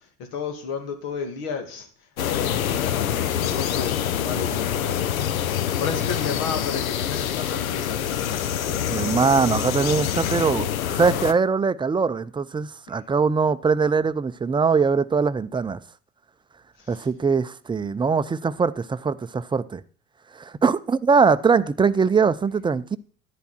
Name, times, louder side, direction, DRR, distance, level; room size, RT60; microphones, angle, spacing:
voice 1, 0.3-1.9 2.2-5.2 5.8-9.0, left 5 dB, 60° left, 2.4 m, -33 dB
sound 1, 2.2-11.3, left 10 dB, 80° left, 0.8 m, -26 dB
voice 2, 8.9-10.7 10.9-15.8 16.9-19.8 20.3-23.0, right 5 dB, 10° right, 0.5 m, -22 dB
10.5 x 10.5 x 4.3 m
figure-of-eight pair, 65°, 41 cm